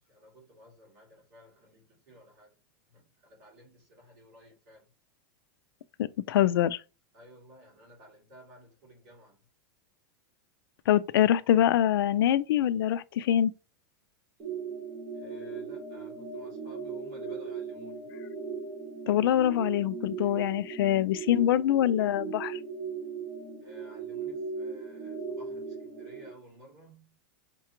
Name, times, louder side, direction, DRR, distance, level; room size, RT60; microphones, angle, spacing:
voice 1, 0.1-2.5 2.9-4.8 7.1-9.4 15.1-18.1 23.6-27.2, right 1 dB, 50° right, 2.3 m, -55 dB
voice 2, 6.0-6.8 10.9-13.5 19.1-22.6, left 11 dB, 75° left, 0.4 m, -24 dB
sound 1, 14.4-26.3, right 5 dB, 10° right, 0.6 m, -38 dB
5.7 x 2.3 x 2.9 m
supercardioid pair, 180°, 12 cm